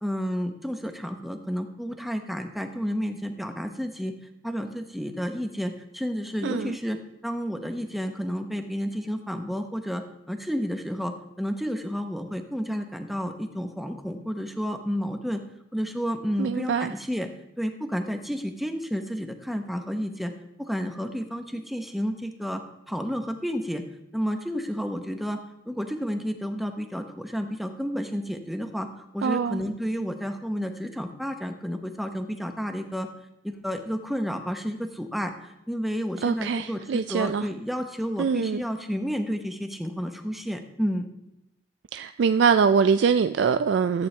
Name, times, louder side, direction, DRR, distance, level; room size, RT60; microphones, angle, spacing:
voice 1, 0.0-4.1 4.4-15.4 15.7-17.3 17.6-20.3 20.6-23.8 24.1-25.4 25.7-33.1 33.4-41.1, equal, ahead, 0.8 m, -31 dB
voice 2, 6.4-6.8 16.4-16.9 29.2-29.6 36.2-37.5 38.2-38.6 41.9-44.1, right 6 dB, 70° right, 0.3 m, -23 dB
14.0 x 8.6 x 3.3 m
head